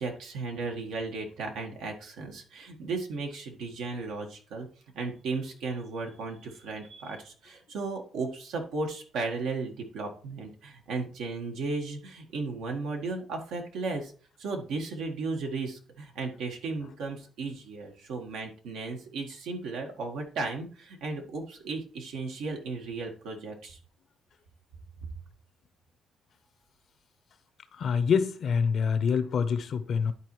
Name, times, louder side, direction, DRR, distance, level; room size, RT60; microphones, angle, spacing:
voice 1, 0.0-4.7 4.9-14.1 14.4-23.8 25.0-25.1, right 3 dB, 85° right, 1.5 m, -35 dB
voice 2, 27.7-30.1, left 6 dB, 60° left, 0.7 m, -26 dB
11.5 x 4.2 x 3.1 m
cardioid pair, 90°, 0 cm